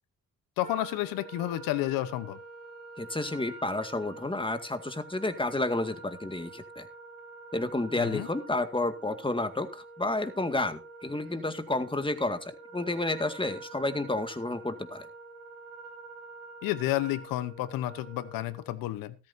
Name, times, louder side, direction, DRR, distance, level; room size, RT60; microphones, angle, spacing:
voice 1, 0.6-2.4 8.0-8.3 16.6-19.2, left 15 dB, 85° left, 15 dB, 1.0 m, -31 dB
Wind instrument woodwind instrument, 0.6-18.7, right 3 dB, 90° right, 3.4 m, -47 dB
voice 2, 3.0-6.9 7.5-15.1, left 2 dB, 15° left, 8 dB, 2.0 m, -31 dB
14.0 x 13.5 x 2.7 m, 0.31 s
supercardioid pair, 55°, 33 cm